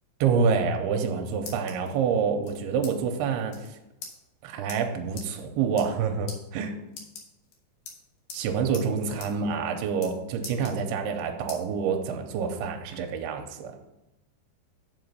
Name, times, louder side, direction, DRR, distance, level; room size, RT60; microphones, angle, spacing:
voice 1, 0.2-3.6 4.4-6.8 8.3-13.8, right 6 dB, 85° right, 4 dB, 2.7 m, -27 dB
sound 1, 0.9-1.9 2.4-2.9 3.2-3.3 3.5-3.7 4.0-4.1 4.7-4.8 5.2-5.3 5.7-6.0 6.3-6.4 6.9-7.5 7.9-8.4 8.7-8.9 9.2-9.3 9.6-10.1 10.4-11.1 11.5-11.6 12.1-13.0, left 5 dB, 65° left, 2.7 m, -43 dB
7.2 x 4.0 x 6.7 m, 0.92 s
omnidirectional pair, 4.6 m